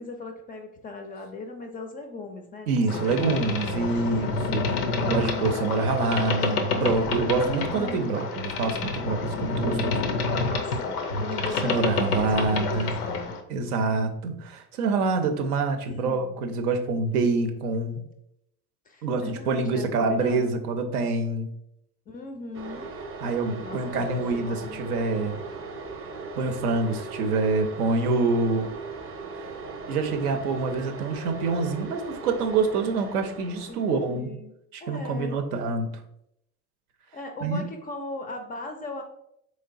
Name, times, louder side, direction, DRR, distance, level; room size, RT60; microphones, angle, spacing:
voice 1, 0.0-2.7 2.9-4.0 4.5-5.6 7.3-8.1 9.6-13.4 15.9-16.3 18.9-20.5 22.1-22.9 23.6-25.1 33.7-34.5 34.8-35.4 37.1-39.0, left 3 dB, 20° left, 4 dB, 0.3 m, -38 dB
voice 2, 2.7-4.6 5.0-9.9 11.6-13.0 13.5-18.0 19.0-21.5 23.2-25.4 26.4-28.7 29.4-29.5 29.9-34.3 34.7-35.9 37.4-37.7, right 3 dB, 80° right, 6 dB, 0.6 m, -26 dB
Boat Water vehicle, 2.9-13.4, left 3 dB, 85° left, 0.5 m, -28 dB
sound 1, 22.5-34.2, right 4 dB, 30° right, 0.6 m, -39 dB
4.0 x 3.1 x 2.4 m, 0.77 s
figure-of-eight pair, 60°, 44 cm